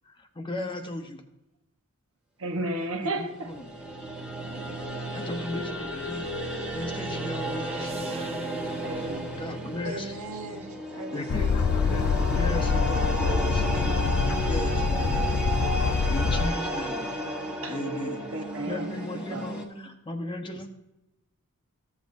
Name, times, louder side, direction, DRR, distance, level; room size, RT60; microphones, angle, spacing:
voice 1, 0.0-1.2 3.0-3.6 5.1-7.9 9.1-10.1 11.1-11.5 11.8-15.3 15.7-15.8 16.1-17.1 17.7-18.2 18.7-20.7, left 1 dB, 20° left, 0.8 m, -36 dB
voice 2, 2.4-3.5 4.4-5.2 8.8-9.4 14.7-15.8 17.6-19.5, right 2 dB, 60° right, 1.1 m, -35 dB
sound 1, 3.2-19.7, right 1 dB, 5° right, 1.2 m, -33 dB
sound 2, 6.2-10.4 13.3-14.8 15.3-17.0, right 2 dB, 30° right, 0.7 m, -43 dB
voice 3, 9.8-11.8 19.3-19.9, right 2 dB, 85° right, 1.5 m, -40 dB
Boat Water vehicle, 11.3-16.5, left 5 dB, 90° left, 0.4 m, -25 dB
14.5 x 7.2 x 2.6 m
head